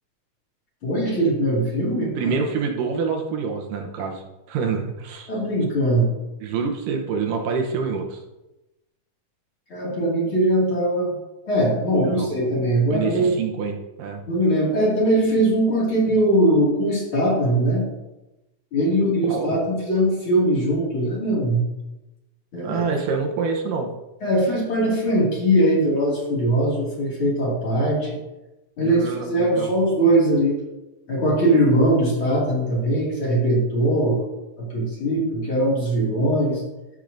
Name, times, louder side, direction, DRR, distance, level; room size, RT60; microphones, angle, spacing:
voice 1, 0.8-2.3 5.3-6.1 9.7-11.1 11.5-13.4 14.3-17.8 18.7-21.6 22.5-22.8 24.2-28.2 28.8-30.6 31.1-34.2 34.6-36.6, right 1 dB, 40° left, -5 dB, 2.8 m, -21 dB
voice 2, 2.2-5.3 6.4-8.2 12.0-12.3 12.9-14.2 19.2-19.5 22.6-23.9 28.8-29.7, right 5 dB, 80° right, 2 dB, 2.5 m, -26 dB
13.5 x 6.3 x 2.6 m, 0.99 s
omnidirectional pair, 3.8 m